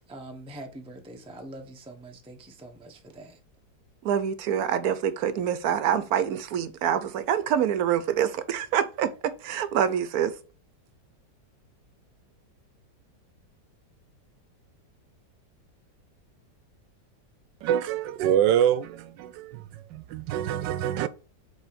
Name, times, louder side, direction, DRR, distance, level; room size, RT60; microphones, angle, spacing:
voice 1, 0.1-3.4, right 1 dB, 10° right, 0.4 m, -44 dB
voice 2, 4.0-10.4, right 9 dB, 65° right, 1.0 m, -26 dB
voice 3, 17.6-19.6 19.9-21.1, right 10 dB, 85° right, 1.3 m, -25 dB
5.4 x 4.1 x 5.1 m
omnidirectional pair, 1.9 m